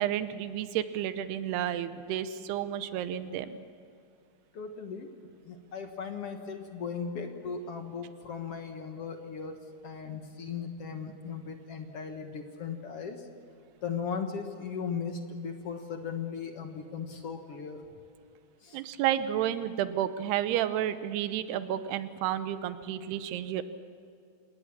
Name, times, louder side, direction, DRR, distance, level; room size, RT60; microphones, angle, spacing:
voice 1, 0.0-3.6 10.1-10.2 18.7-23.6, right 11 dB, 90° right, 12 dB, 2.9 m, -31 dB
voice 2, 4.5-5.1 5.4-13.3 13.8-17.8 18.6-18.8, left 6 dB, 55° left, 5 dB, 1.7 m, -37 dB
27.0 x 19.5 x 7.4 m, 2.4 s
omnidirectional pair, 4.6 m